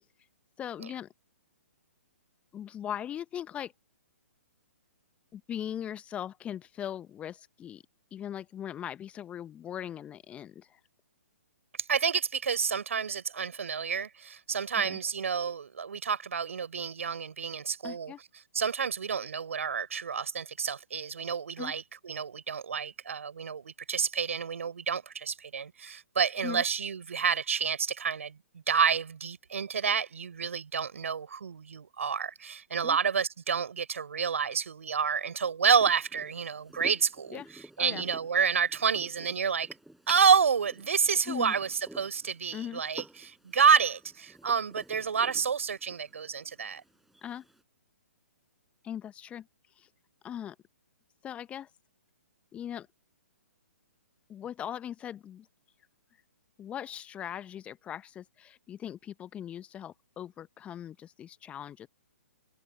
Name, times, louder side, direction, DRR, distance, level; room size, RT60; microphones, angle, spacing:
voice 1, 0.6-1.1 2.5-3.7 5.3-7.8 8.1-10.8 14.8-15.0 17.8-18.2 21.6-21.7 26.4-26.6 32.8-33.0 37.3-37.5 37.8-38.0 41.3-41.5 42.5-42.8 47.2-47.4 48.8-49.5 49.8-49.9 50.2-50.5 51.2-51.7 52.5-52.9 54.3-55.5 56.6-61.9, left 10 dB, 15° left, 1.0 m, -39 dB
voice 2, 11.9-18.1 18.5-28.4 28.7-37.4 37.8-39.7 40.1-46.8, right 6 dB, 65° right, 5.3 m, -29 dB
sound 1, 35.8-47.6, right 1 dB, ahead, 6.4 m, -51 dB
figure-of-eight pair, 125°, 8 cm